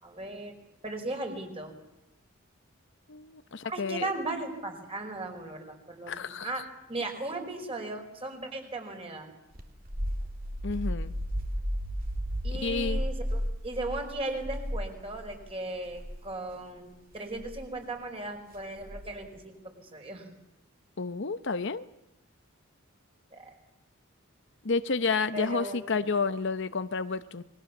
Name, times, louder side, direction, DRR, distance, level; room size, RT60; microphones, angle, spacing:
voice 1, 0.0-0.5 0.8-1.7 3.6-6.1 6.4-6.6 6.9-9.3 12.4-16.9 17.1-20.3 23.3-23.5 25.3-25.9, right 2 dB, 30° right, 4 dB, 5.0 m, -37 dB
voice 2, 3.1-4.1 6.1-6.6 10.6-11.1 12.5-13.0 21.0-21.9 24.6-27.4, left 4 dB, 60° left, 12 dB, 0.8 m, -30 dB
sound 1, 9.6-15.4 15.9-16.2 17.4-17.7 18.8-19.3, equal, 45° right, 2.7 m, -33 dB
28.5 x 22.0 x 7.2 m, 0.91 s
head